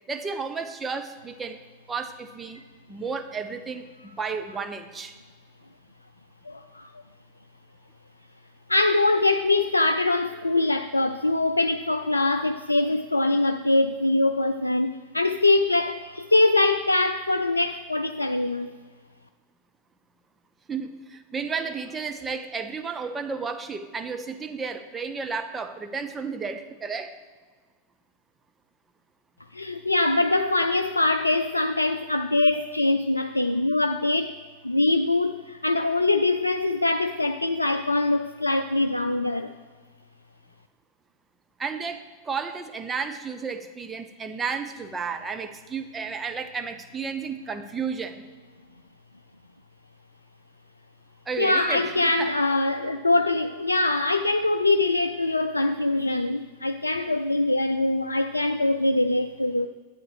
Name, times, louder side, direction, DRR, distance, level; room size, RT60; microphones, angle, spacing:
voice 1, 0.1-1.6 1.9-2.6 2.9-5.2 20.7-27.2 41.6-48.3 51.3-52.3, right 5 dB, 15° right, 7 dB, 0.9 m, -32 dB
voice 2, 6.5-6.9 8.7-18.7 29.5-34.3 34.6-39.5 51.4-59.7, left 2 dB, 85° left, 7 dB, 0.4 m, -23 dB
12.0 x 8.9 x 5.0 m, 1.4 s
figure-of-eight pair, 90°, 0 cm